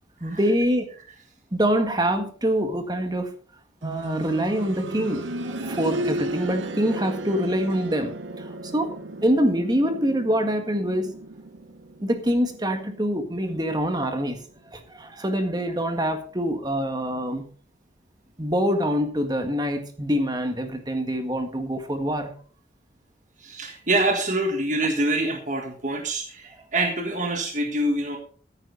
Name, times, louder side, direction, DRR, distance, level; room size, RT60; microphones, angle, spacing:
voice 1, 0.2-0.9 1.5-3.3 3.8-9.0 9.2-11.2 12.0-14.4 14.7-17.5 18.4-22.3, equal, 20° right, 6 dB, 1.7 m, -25 dB
sound 1, 3.8-14.6 14.9-15.0 15.9-16.0, right 1 dB, 90° right, 1.0 m, -35 dB
voice 2, 23.4-28.2, right 2 dB, 40° right, 3 dB, 1.6 m, -25 dB
15.0 x 9.4 x 4.0 m, 0.43 s
head